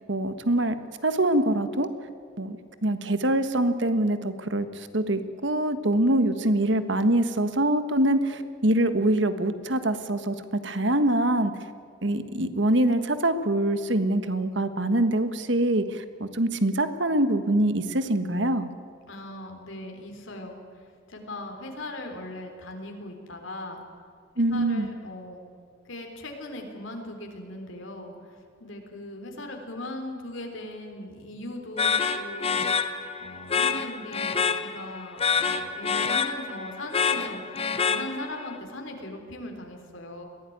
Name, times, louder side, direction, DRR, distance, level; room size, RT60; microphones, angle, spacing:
voice 1, 0.1-0.8 1.0-1.9 2.4-2.6 2.8-4.6 4.9-11.5 12.0-18.7 24.4-24.9, right 1 dB, 60° right, 10 dB, 1.5 m, -24 dB
voice 2, 19.1-23.8 24.5-25.4 25.9-32.9 33.2-40.2, left 1 dB, 75° left, 3 dB, 3.7 m, -39 dB
sound 1, 31.8-38.5, left 6 dB, 30° left, 1.0 m, -27 dB
22.0 x 16.5 x 9.4 m, 2.3 s
head